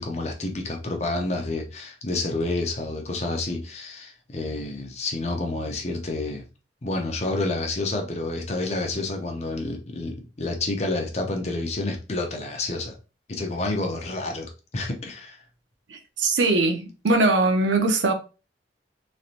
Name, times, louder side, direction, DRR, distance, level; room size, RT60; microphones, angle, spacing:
voice 1, 0.0-6.4 6.8-12.9 13.3-15.4, left 2 dB, 40° left, 0.6 m, -29 dB
voice 2, 15.9-18.1, right 2 dB, 90° right, 0.7 m, -21 dB
3.2 x 2.7 x 2.5 m
head